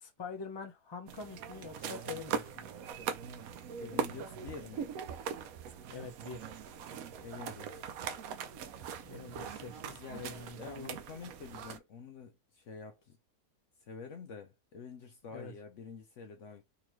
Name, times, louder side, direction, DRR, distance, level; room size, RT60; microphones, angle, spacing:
voice 1, 0.0-2.7 5.9-6.5 9.0-11.0 15.3-15.5, left 4 dB, 25° left, 0.5 m, -45 dB
sound 1, 1.1-11.8, right 7 dB, 70° right, 1.0 m, -41 dB
voice 2, 3.8-4.9 7.2-7.8 9.9-10.3 10.6-13.2 13.8-16.6, left 5 dB, 65° left, 0.8 m, -48 dB
3.8 x 2.8 x 3.1 m
omnidirectional pair, 1.6 m